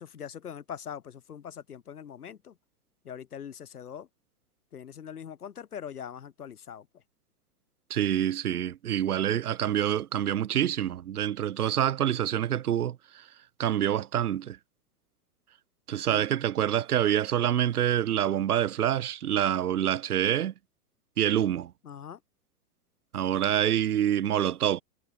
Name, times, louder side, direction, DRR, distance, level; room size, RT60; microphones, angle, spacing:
voice 1, 0.0-2.6 3.0-4.1 4.7-7.0 16.1-16.3 21.8-22.2, left 8 dB, 85° left, 2.0 m, -42 dB
voice 2, 7.9-13.3 13.6-14.6 15.9-20.5 21.2-21.7 23.1-24.8, right 11 dB, 85° right, 1.1 m, -26 dB
hypercardioid pair, 115°, 44 cm